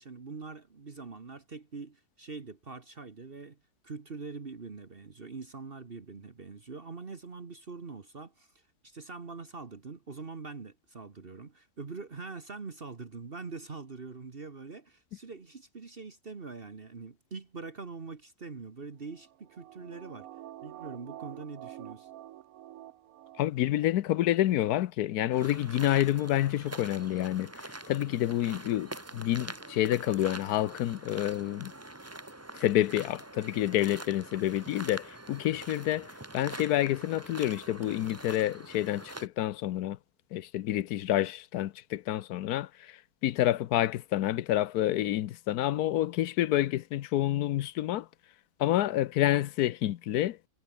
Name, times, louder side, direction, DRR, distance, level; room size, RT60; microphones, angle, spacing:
voice 1, 0.0-3.6 3.8-20.3 20.6-22.1, right 4 dB, 40° right, 1.6 m, -43 dB
sound 1, 19.1-23.9 24.2-24.3, right 13 dB, 70° right, 1.1 m, -48 dB
voice 2, 23.4-27.5 27.9-31.7 32.6-40.0 40.3-42.9 43.2-48.1 48.6-50.4, left 13 dB, 90° left, 1.2 m, -28 dB
sound 2, 25.3-39.3, right 2 dB, 10° right, 1.2 m, -45 dB
omnidirectional pair, 1.6 m